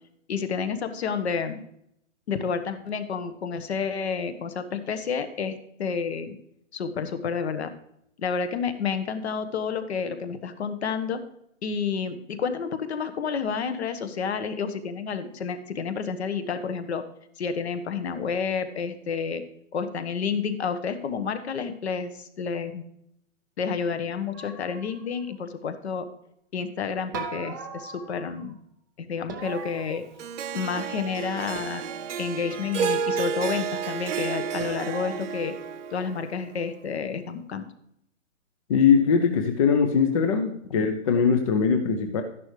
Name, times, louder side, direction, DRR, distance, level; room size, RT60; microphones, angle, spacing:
voice 1, 0.3-1.6 2.3-6.4 6.7-7.7 8.2-11.2 11.6-17.0 17.4-19.4 19.7-22.8 23.6-26.1 26.5-28.5 29.0-30.0 30.5-31.9 32.2-35.5 35.9-37.7, left 6 dB, 55° left, 10 dB, 1.4 m, -30 dB
sound 1, 24.3-25.3 27.1-28.5 29.3-30.6 31.5-32.4 34.6-35.2, right 6 dB, 15° right, 0.5 m, -39 dB
Harp, 30.2-36.6, right 6 dB, 65° right, 0.8 m, -31 dB
voice 2, 38.7-42.2, left 6 dB, 25° left, 5 dB, 0.7 m, -21 dB
12.5 x 11.0 x 3.3 m, 0.75 s
hypercardioid pair, 150°, 39 cm